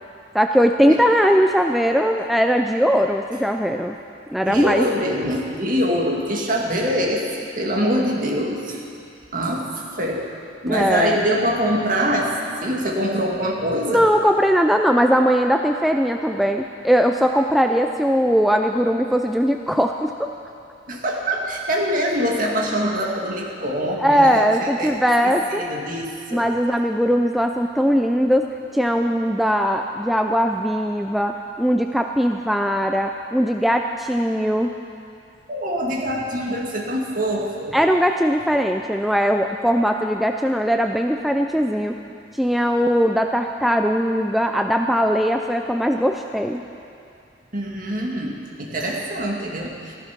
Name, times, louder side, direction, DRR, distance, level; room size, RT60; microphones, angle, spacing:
voice 1, 0.3-4.0 4.3-4.9 10.7-11.3 13.9-20.3 24.0-25.6 26.3-34.7 37.7-41.9 42.4-46.6, equal, ahead, 4 dB, 0.4 m, -20 dB
voice 2, 4.4-8.8 9.3-10.3 10.6-14.1 20.9-25.0 25.2-26.5 35.5-37.8 47.5-49.9, equal, 45° right, -1 dB, 2.1 m, -24 dB
14.5 x 14.5 x 5.9 m, 2.5 s
head